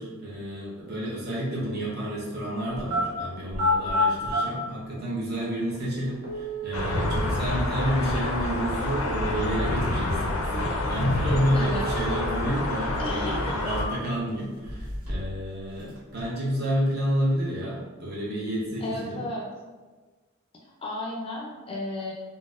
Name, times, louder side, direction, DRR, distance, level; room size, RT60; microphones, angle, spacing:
voice 1, 0.0-19.3, equal, 50° right, -6 dB, 0.9 m, -30 dB
sound 1, 2.7-3.0 3.5-4.4 5.4-5.5 6.2-7.3 11.2-12.3 12.7-12.8 13.4-14.2 14.6-15.4 15.7-16.2, left 1 dB, 80° right, 1.0 m, -29 dB
sound 2, 6.7-13.8, left 2 dB, 90° left, 0.5 m, -28 dB
voice 2, 11.5-11.9 13.0-13.6 18.8-19.4 20.6-22.1, left 1 dB, 25° left, -2 dB, 0.4 m, -33 dB
3.9 x 2.1 x 2.4 m, 1.3 s
head